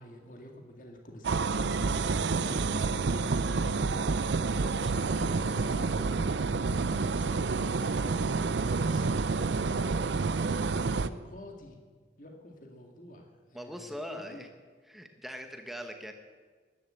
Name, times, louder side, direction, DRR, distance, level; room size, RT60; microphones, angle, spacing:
voice 1, 0.0-4.1 5.1-11.8 12.2-14.4, equal, 45° left, 2 dB, 2.1 m, -48 dB
sound 1, 1.2-11.1, right 4 dB, 75° right, 0.5 m, -29 dB
voice 2, 4.6-4.9 13.5-14.5 14.9-16.1, equal, ahead, 5 dB, 1.1 m, -41 dB
13.5 x 11.5 x 7.8 m, 1.5 s
head